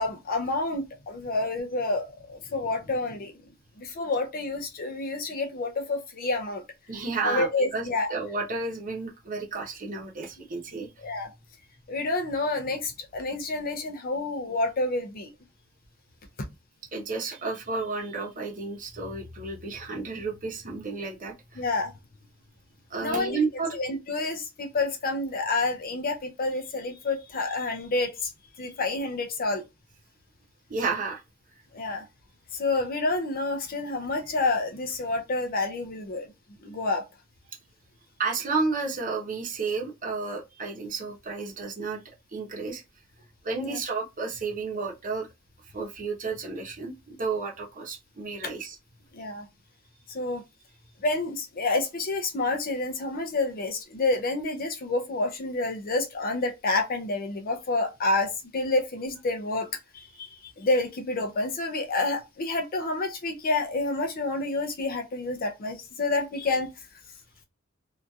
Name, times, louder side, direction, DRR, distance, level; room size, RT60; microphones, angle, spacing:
voice 1, 0.0-3.3 3.8-6.6 7.2-8.1 11.0-11.3 11.9-15.3 21.6-21.9 23.0-23.4 23.7-28.3 28.6-29.6 31.7-32.1 32.5-36.3 36.6-37.0 43.6-43.8 49.1-49.5 50.1-50.4 51.0-59.7 59.9-60.3 60.6-66.7, left 2 dB, 45° left, 0.5 m, -28 dB
voice 2, 6.9-10.9 16.9-21.6 22.9-23.8 30.7-31.2 38.2-42.0 42.3-42.8 43.4-45.3 45.7-48.8, right 4 dB, 40° right, 0.8 m, -32 dB
2.8 x 2.4 x 2.3 m
head